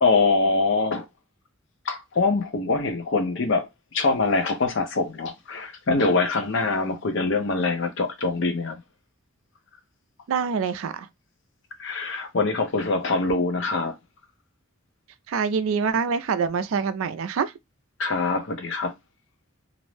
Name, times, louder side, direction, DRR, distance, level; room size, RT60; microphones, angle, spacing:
voice 1, 0.0-1.1 1.9-3.7 3.9-8.8 11.8-13.9 18.0-18.9, left 3 dB, 60° left, 0.6 m, -24 dB
voice 2, 10.3-11.1 15.3-17.5, right 6 dB, 75° right, 0.4 m, -25 dB
2.5 x 2.0 x 3.1 m
head